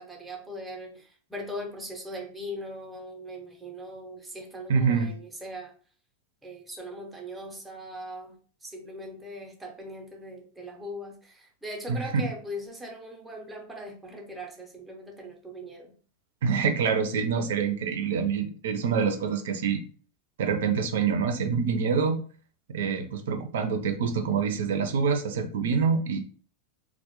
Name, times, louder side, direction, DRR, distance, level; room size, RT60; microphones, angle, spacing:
voice 1, 0.0-5.7 6.4-16.0, equal, 5° right, 1 dB, 0.5 m, -40 dB
voice 2, 4.7-5.1 11.9-12.2 16.4-19.8 20.4-22.2 22.7-26.2, right 6 dB, 85° right, 6 dB, 0.4 m, -26 dB
2.1 x 2.0 x 2.9 m, 0.42 s
supercardioid pair, 140°, 0 cm